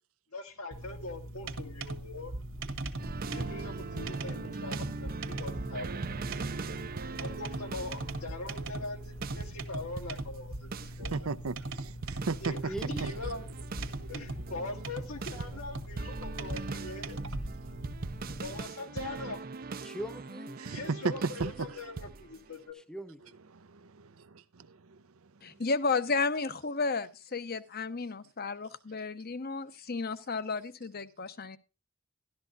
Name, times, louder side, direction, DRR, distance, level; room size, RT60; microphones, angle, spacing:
voice 1, 0.3-2.3 3.3-6.0 7.2-10.7 11.0-11.1 12.4-12.7 13.0-13.4 14.1-17.2 18.4-19.4 20.7-22.8, left 2 dB, 80° left, 2.3 m, -42 dB
sound 1, 0.7-18.6, right 2 dB, 60° right, 1.5 m, -40 dB
sound 2, 3.0-10.4 10.7-11.0 12.0-22.6, right 4 dB, 45° right, 0.6 m, -41 dB
voice 2, 11.0-12.7 13.0-13.1 20.6-21.8 23.5-25.0, right 4 dB, 80° right, 0.7 m, -35 dB
voice 3, 12.7-13.0 19.8-20.6 22.7-23.4, right 1 dB, 5° left, 0.8 m, -40 dB
voice 4, 25.4-31.6, left 4 dB, 45° left, 0.9 m, -33 dB
13.5 x 12.0 x 2.5 m
head